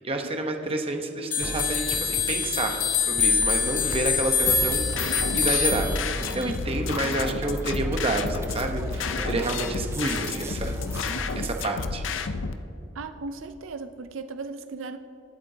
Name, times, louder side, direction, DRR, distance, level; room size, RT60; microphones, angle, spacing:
voice 1, 0.0-6.0 6.3-10.8 11.4-12.0, right 2 dB, 30° right, 4 dB, 0.9 m, -29 dB
sound 1, 1.3-6.5, left 6 dB, 40° left, 1.5 m, -25 dB
sound 2, 1.4-11.6, right 1 dB, 15° right, 0.4 m, -37 dB
sound 3, 4.5-12.5, left 4 dB, 75° left, 0.6 m, -31 dB
voice 2, 12.9-15.0, right 3 dB, 80° right, 9 dB, 0.5 m, -37 dB
21.0 x 8.1 x 2.8 m, 2.8 s
head